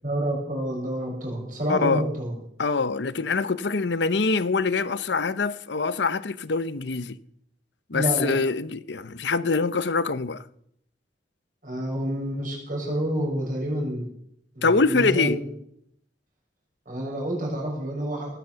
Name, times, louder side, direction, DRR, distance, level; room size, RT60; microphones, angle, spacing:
voice 1, 0.0-2.3 7.9-8.3 11.6-14.1 14.5-15.4 16.8-18.4, right 1 dB, 50° right, 6.5 m, -28 dB
voice 2, 1.7-2.0 2.6-7.2 7.9-10.4 14.6-15.4, left 4 dB, 70° left, 0.8 m, -24 dB
19.0 x 9.4 x 7.0 m
head